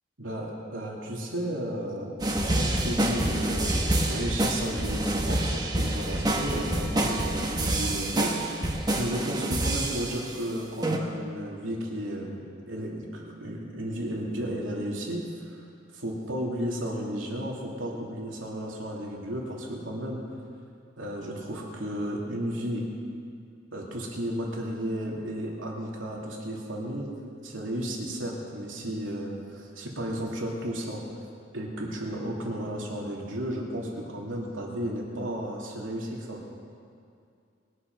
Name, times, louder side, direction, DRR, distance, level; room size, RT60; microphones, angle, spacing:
voice 1, 0.2-8.3 9.0-12.3 12.7-15.6 15.9-20.2 21.0-22.9 23.7-27.1 27.4-31.0 31.5-36.4, equal, 85° right, -2 dB, 2.8 m, -33 dB
sound 1, 2.2-10.4 10.8-11.0, right 1 dB, 20° right, 1.2 m, -27 dB
21.5 x 8.6 x 6.1 m, 2.4 s
head